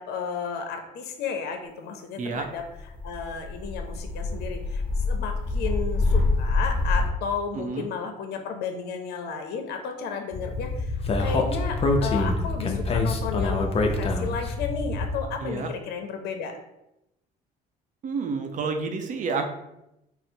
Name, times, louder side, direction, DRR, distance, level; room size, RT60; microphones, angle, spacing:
voice 1, 0.0-2.6 3.0-16.6, left 6 dB, 75° left, 5 dB, 0.6 m, -33 dB
sound 1, 2.8-7.1, left 3 dB, 10° left, 0.9 m, -26 dB
Speech, 10.3-15.3, left 3 dB, 35° left, 0.5 m, -26 dB
voice 2, 18.0-19.5, right 4 dB, 50° right, 5 dB, 0.6 m, -29 dB
3.9 x 2.0 x 4.3 m, 0.86 s
cardioid pair, 110°, 17 cm